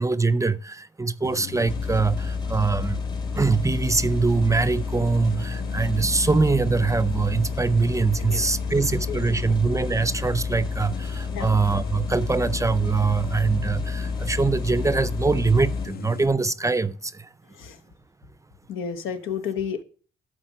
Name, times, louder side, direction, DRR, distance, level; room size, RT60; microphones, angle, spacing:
voice 1, 0.0-3.0 3.3-17.3, right 4 dB, 15° right, 0.5 m, -23 dB
sound 1, 1.2-16.3, left 10 dB, 50° left, 0.6 m, -38 dB
sound 2, 1.7-15.9, left 4 dB, 20° left, 0.9 m, -30 dB
voice 2, 8.1-8.8 9.1-9.7 11.3-11.6 17.5-17.8 18.7-19.8, left 7 dB, 85° left, 1.1 m, -33 dB
12.0 x 4.3 x 7.2 m
cardioid pair, 90°, 20 cm